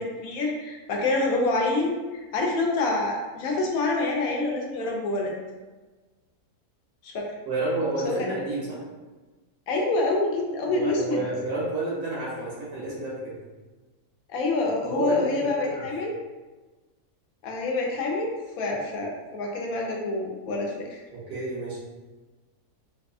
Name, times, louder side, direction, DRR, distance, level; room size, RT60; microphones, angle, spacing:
voice 1, 0.0-5.3 7.0-7.3 8.0-8.3 9.7-11.2 14.3-16.2 17.4-21.0, left 2 dB, 70° left, -1 dB, 1.0 m, -27 dB
voice 2, 7.4-8.8 10.6-13.3 14.8-15.9 21.1-21.8, right 2 dB, 80° right, -6 dB, 1.7 m, -30 dB
3.9 x 2.4 x 2.3 m, 1.3 s
omnidirectional pair, 1.6 m